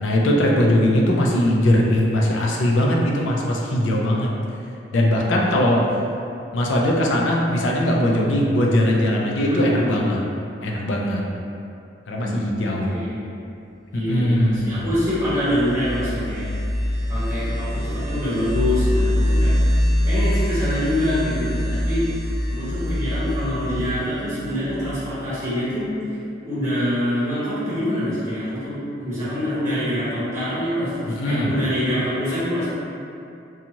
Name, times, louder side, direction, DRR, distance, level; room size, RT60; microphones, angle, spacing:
voice 1, 0.0-4.3 4.9-5.8 6.5-10.2 10.6-11.2 12.1-12.9 13.9-14.8 31.1-31.5, left 1 dB, 85° left, -1 dB, 0.4 m, -20 dB
voice 2, 9.4-9.9 12.2-12.6 12.9-13.2 13.9-16.5 17.1-19.5 20.0-22.1 22.5-25.9 26.4-32.7, left 1 dB, 15° right, -12 dB, 1.0 m, -25 dB
sound 1, 14.5-25.1, equal, 80° right, 0.6 m, -24 dB
2.6 x 2.3 x 2.9 m, 2.6 s
head